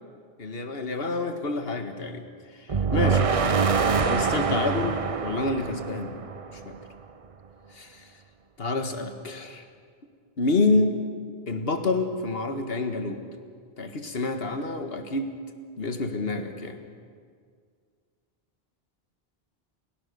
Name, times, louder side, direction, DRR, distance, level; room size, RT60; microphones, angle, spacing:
voice 1, 0.4-2.3 2.5-3.3 4.0-6.2 6.5-6.8 7.7-8.1 8.6-9.6 10.4-10.9 11.5-13.2 13.8-15.4 15.8-16.8, left 3 dB, 70° left, 7 dB, 1.9 m, -28 dB
sound 1, 2.7-6.8, right 5 dB, 35° right, 0.8 m, -25 dB
30.0 x 16.5 x 6.8 m, 2.1 s
omnidirectional pair, 1.0 m